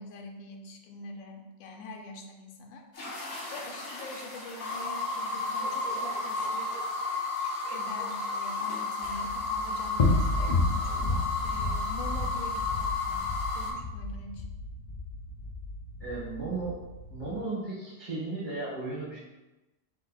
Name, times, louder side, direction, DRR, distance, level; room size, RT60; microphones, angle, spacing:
voice 1, 0.0-2.8 3.5-6.8 7.7-14.4, left 2 dB, 90° left, 4 dB, 1.1 m, -44 dB
sound 1, 2.9-13.7, left 3 dB, 65° left, 1.4 m, -33 dB
Bark, 5.5-7.0 7.6-8.1, equal, 20° right, 1.5 m, -45 dB
sound 2, 9.0-17.4, left 2 dB, 40° left, 0.7 m, -32 dB
voice 2, 16.0-16.8 17.1-19.2, right 3 dB, 40° right, -10 dB, 1.5 m, -35 dB
3.5 x 3.2 x 4.0 m, 1.0 s
omnidirectional pair, 1.4 m